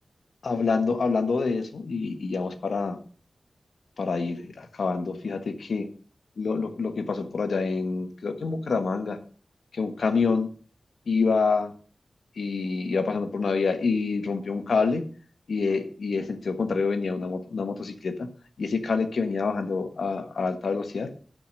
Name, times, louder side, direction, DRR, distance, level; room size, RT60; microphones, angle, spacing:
voice 1, 0.4-3.0 4.0-5.9 6.4-9.2 9.7-10.5 11.1-11.7 12.4-15.0 15.5-18.3 18.6-21.1, left 4 dB, 85° left, 8 dB, 1.2 m, -27 dB
8.5 x 6.0 x 6.2 m, 0.42 s
wide cardioid pair, 110°, 0 cm